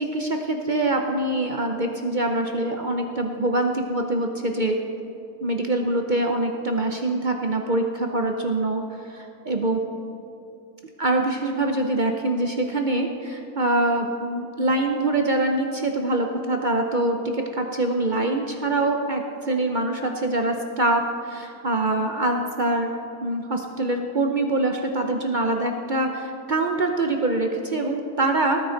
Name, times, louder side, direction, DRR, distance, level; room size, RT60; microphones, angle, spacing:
voice 1, 0.0-4.8 5.4-9.8 11.0-22.9 23.2-28.6, right 2 dB, 55° right, 3 dB, 0.5 m, -24 dB
18.0 x 9.3 x 3.9 m, 2.7 s
omnidirectional pair, 1.8 m